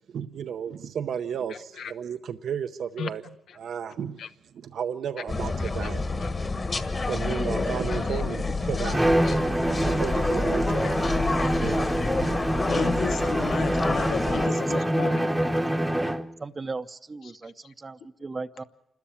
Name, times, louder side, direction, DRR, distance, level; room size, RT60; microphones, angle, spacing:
voice 1, 0.1-3.2 3.6-4.2 4.5-6.0 7.1-11.1 11.5-11.9 12.2-12.4, right 8 dB, 75° right, 0.7 m, -33 dB
voice 2, 1.5-1.9 3.0-3.1 4.2-4.3 5.6-5.9 6.2-6.3 7.9-8.2 9.2-9.4 10.8-10.9 12.7-15.3 17.4-17.5, left 7 dB, 75° left, 0.9 m, -34 dB
sound 1, 5.3-14.5, left 3 dB, 30° left, 1.5 m, -28 dB
Bowed string instrument, 8.9-16.3, right 1 dB, 5° right, 0.9 m, -25 dB
voice 3, 15.0-15.4 16.0-18.6, right 3 dB, 30° right, 0.7 m, -38 dB
27.5 x 13.0 x 8.4 m
cardioid pair, 95°, 0 cm